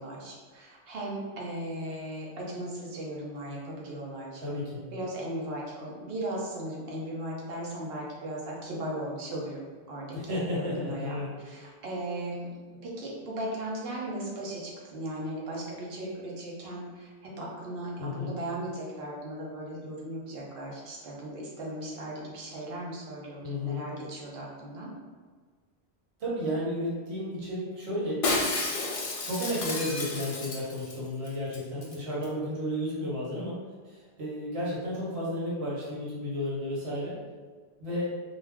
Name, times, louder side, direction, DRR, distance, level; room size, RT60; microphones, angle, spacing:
voice 1, 0.0-4.4 4.9-12.6 12.8-24.9, right 1 dB, 70° right, -3 dB, 0.9 m, -37 dB
voice 2, 4.4-4.8 10.1-11.3 18.0-18.3 23.4-23.8 26.2-28.2 29.2-33.6 33.8-37.1 37.8-38.1, left 1 dB, 90° right, -6 dB, 1.2 m, -32 dB
Shatter, 28.2-31.0 31.3-31.4 31.5-32.0 32.2-32.3, left 2 dB, 50° left, 0.4 m, -31 dB
2.4 x 2.2 x 3.4 m, 1.5 s
omnidirectional pair, 1.1 m